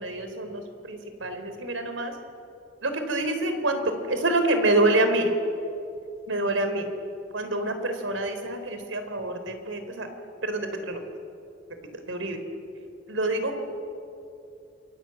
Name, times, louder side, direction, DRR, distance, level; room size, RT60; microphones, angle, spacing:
voice 1, 0.0-2.2 2.8-5.3 6.3-6.9 7.3-10.1 10.4-11.0 11.9-12.4 13.1-13.7, right 2 dB, 90° right, 7 dB, 3.8 m, -27 dB
28.0 x 23.5 x 8.9 m, 2.7 s
head